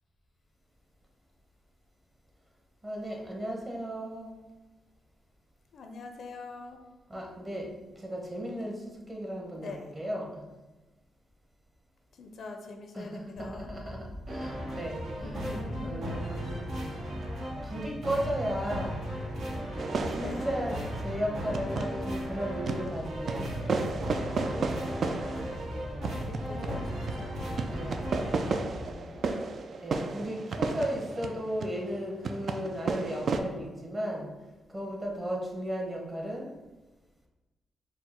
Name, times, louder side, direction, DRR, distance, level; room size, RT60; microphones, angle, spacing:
voice 1, 2.8-4.3 7.1-10.5 12.9-15.4 15.8-16.5 17.6-19.0 20.1-23.8 27.7-28.1 29.8-34.3 34.7-36.5, equal, 25° right, 0 dB, 0.9 m, -35 dB
voice 2, 5.7-6.8 9.6-9.9 12.1-13.7 15.2-16.0 20.2-20.5 26.1-27.6 28.2-29.3, left 3 dB, 65° left, 4 dB, 0.5 m, -44 dB
sound 1, 13.4-29.0, left 1 dB, 5° left, 0.4 m, -42 dB
sound 2, 14.3-28.5, equal, 80° right, 1.0 m, -37 dB
sound 3, 19.8-22.3 22.6-33.4, right 4 dB, 55° right, 0.3 m, -34 dB
4.4 x 2.1 x 4.2 m, 1.1 s
cardioid pair, 90°, 0 cm